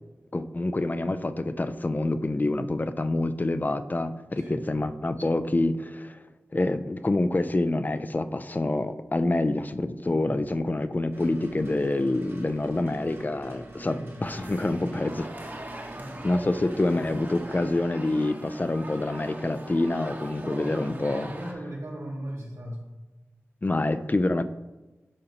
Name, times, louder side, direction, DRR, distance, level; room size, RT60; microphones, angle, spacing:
voice 1, 0.3-6.2 6.5-15.3 16.2-21.3 23.6-24.4, left 2 dB, 35° left, 11 dB, 0.4 m, -27 dB
sound 1, 11.1-17.7, right 1 dB, 55° right, 1.6 m, -46 dB
sound 2, 14.2-21.5, right 1 dB, 35° right, 1.0 m, -41 dB
voice 2, 20.4-22.8, right 1 dB, 90° right, -3 dB, 1.6 m, -38 dB
10.5 x 3.8 x 2.9 m, 1.1 s
cardioid pair, 40°, 5 cm